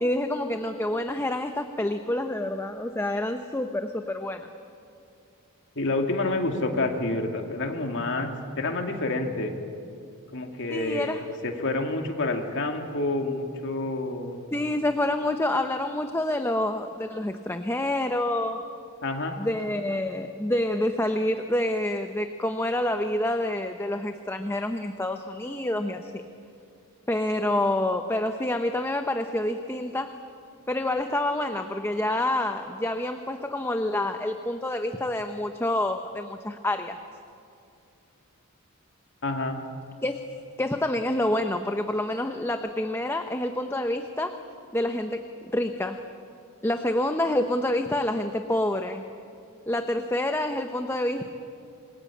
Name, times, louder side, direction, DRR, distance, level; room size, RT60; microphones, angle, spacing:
voice 1, 0.0-4.5 10.7-11.2 14.5-18.7 19.4-26.2 27.1-30.1 30.7-37.0 40.0-40.2 40.6-44.4 44.7-45.2 45.5-46.0 46.6-49.0 49.7-51.2, left 1 dB, 10° left, 6 dB, 0.8 m, -27 dB
voice 2, 5.8-9.5 10.3-14.4 19.0-19.4 39.2-39.6, left 2 dB, 55° left, 3 dB, 2.5 m, -28 dB
27.0 x 22.0 x 8.6 m, 2.6 s
head